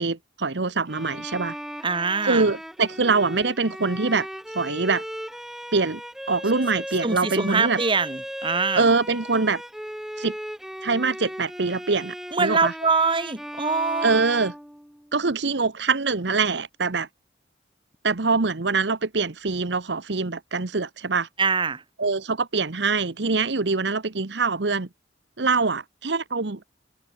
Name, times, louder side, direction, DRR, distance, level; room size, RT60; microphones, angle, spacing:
voice 1, 0.0-1.6 2.3-4.3 4.5-5.0 5.7-6.0 6.3-7.8 8.7-9.6 10.2-10.3 10.8-12.7 14.0-14.5 15.1-17.1 18.0-21.3 22.0-24.9 25.4-26.6, right 4 dB, 70° right, 1.1 m, -24 dB
Bowed string instrument, 0.9-15.2, equal, ahead, 1.3 m, -37 dB
voice 2, 1.8-2.5 7.0-8.9 12.3-14.1 21.4-21.8, right 4 dB, 25° right, 2.1 m, -24 dB
head